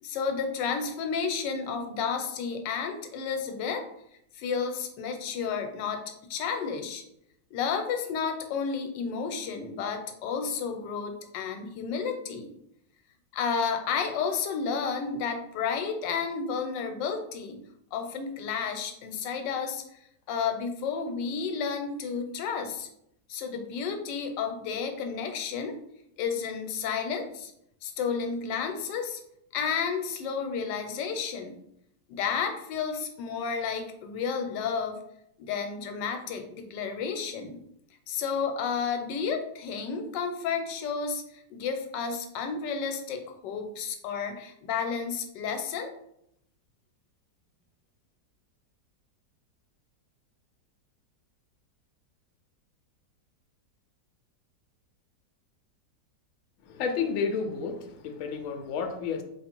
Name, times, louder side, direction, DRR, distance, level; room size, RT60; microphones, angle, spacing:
voice 1, 0.0-3.9 4.3-6.0 6.3-7.0 7.5-12.5 13.3-17.6 17.9-19.8 20.3-22.9 23.3-25.8 26.2-27.5 27.8-29.2 29.5-31.5 32.1-35.0 35.4-37.6 38.1-41.2 41.5-45.9, left 6 dB, 85° left, 5 dB, 1.3 m, -31 dB
voice 2, 56.6-59.2, left 5 dB, 70° left, 5 dB, 0.8 m, -31 dB
3.3 x 2.5 x 4.3 m, 0.76 s
omnidirectional pair, 1.9 m